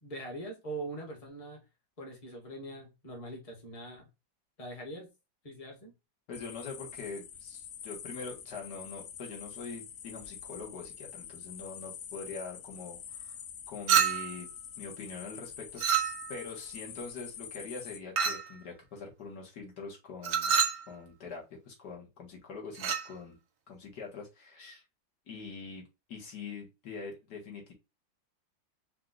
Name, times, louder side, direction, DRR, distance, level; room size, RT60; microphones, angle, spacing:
voice 1, 0.0-1.6 2.0-4.1 4.6-5.1 5.4-5.9, right 2 dB, 20° left, 1.2 m, -42 dB
sound 1, 6.3-18.0, left 8 dB, 80° left, 0.6 m, -46 dB
voice 2, 6.3-13.4 13.7-14.5 14.8-15.8 16.3-20.5 20.9-23.4 23.7-24.8 25.3-25.8 26.1-27.7, left 4 dB, 60° left, 1.9 m, -43 dB
Chink clink, 13.9-14.4 15.8-16.5 18.2-18.5 20.2-20.8 22.7-23.1, right 7 dB, 60° right, 0.8 m, -28 dB
4.6 x 2.5 x 3.7 m
omnidirectional pair, 2.0 m